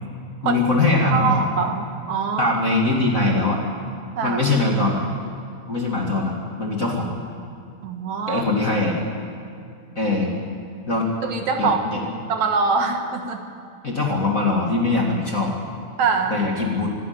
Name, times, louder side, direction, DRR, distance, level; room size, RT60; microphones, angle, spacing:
voice 1, 0.4-1.4 2.4-3.6 4.2-5.0 5.7-7.1 8.3-9.0 10.0-10.3 10.9-11.1 11.6-12.0 13.8-15.5 16.3-16.9, left 2 dB, 30° left, -1 dB, 2.0 m, -21 dB
voice 2, 1.1-2.5 4.2-4.4 7.8-8.4 11.2-13.4 16.0-16.4, right 5 dB, 65° right, 4 dB, 2.7 m, -23 dB
25.0 x 11.0 x 9.5 m, 2.4 s
omnidirectional pair, 3.6 m